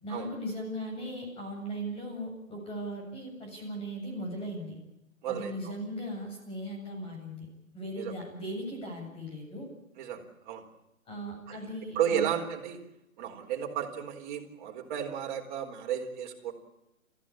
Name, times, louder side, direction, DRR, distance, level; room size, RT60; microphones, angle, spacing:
voice 1, 0.0-4.8 5.3-7.5 7.7-9.7 11.1-12.3, equal, 15° left, 1 dB, 7.6 m, -38 dB
voice 2, 5.2-5.7 8.0-8.1 10.0-10.7 11.5-11.6 11.9-12.8 13.2-16.5, right 9 dB, 35° right, 3 dB, 4.2 m, -33 dB
29.0 x 15.5 x 8.7 m, 0.90 s
figure-of-eight pair, 130°, 41 cm